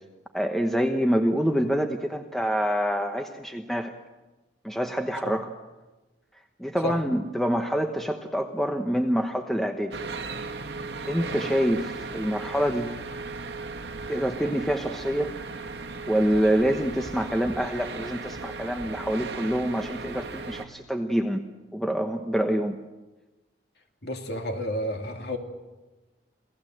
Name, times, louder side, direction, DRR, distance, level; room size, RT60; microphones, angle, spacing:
voice 1, 0.3-3.9 4.6-5.5 6.6-9.9 11.1-12.9 14.1-15.3 16.1-21.4 21.7-22.8, equal, ahead, 4 dB, 1.0 m, -26 dB
sound 1, 9.9-20.7, right 3 dB, 65° right, 1.9 m, -36 dB
voice 2, 24.0-25.4, equal, 60° left, 3 dB, 2.8 m, -31 dB
28.0 x 17.5 x 7.8 m, 1.1 s
head